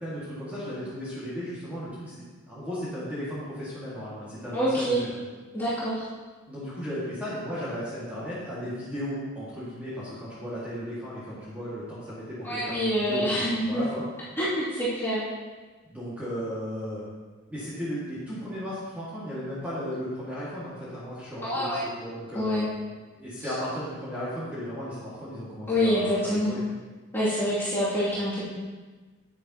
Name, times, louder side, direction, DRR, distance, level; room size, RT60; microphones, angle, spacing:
voice 1, 0.0-5.2 6.5-14.0 15.9-17.0 17.5-22.7 23.2-26.6, equal, 5° right, -10 dB, 2.0 m, -35 dB
voice 2, 4.5-5.0 5.5-6.1 12.4-13.8 14.4-15.2 21.4-21.8 22.3-22.6 23.4-23.5 25.7-26.5 27.1-28.4, equal, 10° left, -13 dB, 2.7 m, -26 dB
9.9 x 9.7 x 3.0 m, 1.3 s
head